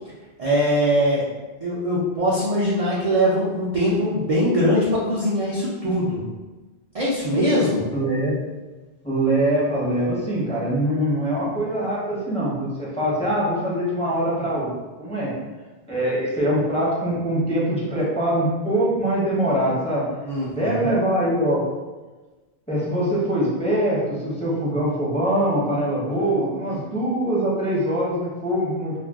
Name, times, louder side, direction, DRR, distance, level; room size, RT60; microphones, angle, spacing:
voice 1, 0.4-1.2 1.6-6.2 6.9-7.8 20.2-20.9 26.7-26.8, equal, 50° right, -6 dB, 0.4 m, -21 dB
voice 2, 7.9-8.4 9.0-14.7 15.0-15.3 15.9-20.0 20.6-21.6 22.7-28.9, right 1 dB, 10° left, -7 dB, 0.5 m, -23 dB
2.4 x 2.2 x 3.4 m, 1.2 s
omnidirectional pair, 1.1 m